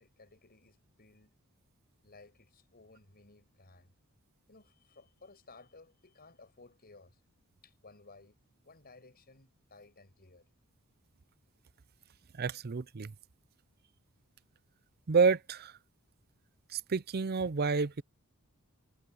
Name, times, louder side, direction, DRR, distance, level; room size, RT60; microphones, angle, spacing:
voice 1, 0.0-1.3 2.0-3.9 4.5-7.2 7.6-10.5, left 3 dB, 45° left, 5.4 m, -58 dB
voice 2, 12.4-13.1 15.1-15.7 16.7-18.0, right 5 dB, 45° right, 0.6 m, -29 dB
head